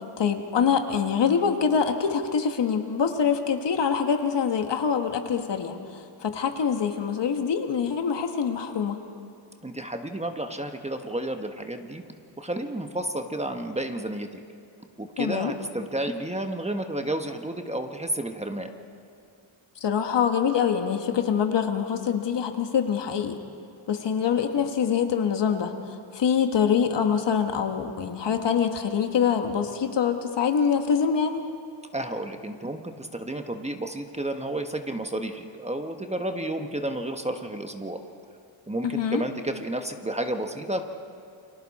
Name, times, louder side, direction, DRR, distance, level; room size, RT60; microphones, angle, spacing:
voice 1, 0.2-9.0 15.2-15.5 19.8-23.4 23.9-31.4 38.8-39.2, left 7 dB, 55° left, 6 dB, 1.6 m, -25 dB
voice 2, 9.6-12.0 12.4-14.4 15.0-18.7 31.9-38.0 38.7-40.8, right 1 dB, 15° right, 5 dB, 1.3 m, -31 dB
29.5 x 23.0 x 4.3 m, 2.4 s
cardioid pair, 90°, 50 cm